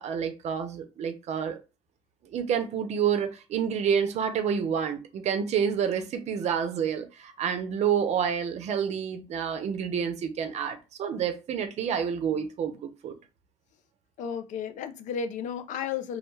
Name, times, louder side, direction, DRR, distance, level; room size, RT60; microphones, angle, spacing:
voice 1, 0.0-1.6 2.3-13.2, right 7 dB, 55° right, 0.6 m, -28 dB
voice 2, 14.2-16.2, left 7 dB, 60° left, 0.5 m, -33 dB
2.3 x 2.1 x 3.1 m
supercardioid pair, 80°, 14 cm